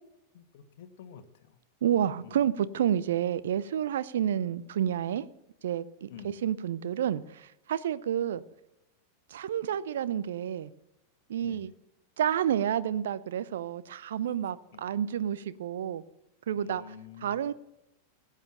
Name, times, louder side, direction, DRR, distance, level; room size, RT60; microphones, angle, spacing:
voice 1, 0.3-1.6 2.2-2.4 6.1-6.3 11.4-11.7 14.7-14.8 16.6-17.4, left 8 dB, 55° left, 1.3 m, -49 dB
voice 2, 1.8-5.3 5.6-6.1 6.4-8.4 9.3-10.7 11.3-11.7 12.2-16.0 16.5-16.8 17.2-17.5, right 10 dB, 60° right, 0.6 m, -29 dB
17.0 x 9.1 x 5.7 m
figure-of-eight pair, 90°, 0 cm